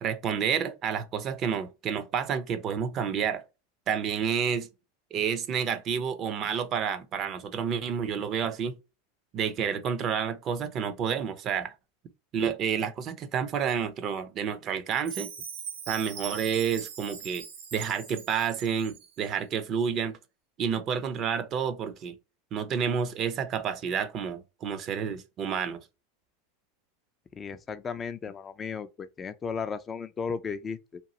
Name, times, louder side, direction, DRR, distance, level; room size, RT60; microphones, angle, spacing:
voice 1, 0.0-3.4 3.9-4.7 5.1-8.8 9.3-11.7 12.3-15.3 15.9-17.5 17.7-20.2 20.6-22.1 22.5-25.8, right 7 dB, 40° right, 0.5 m, -29 dB
Chime, 15.0-19.1, right 7 dB, 60° right, 0.9 m, -41 dB
voice 2, 27.4-31.0, left 6 dB, 25° left, 0.3 m, -35 dB
2.9 x 2.3 x 2.8 m
hypercardioid pair, 105°, 0 cm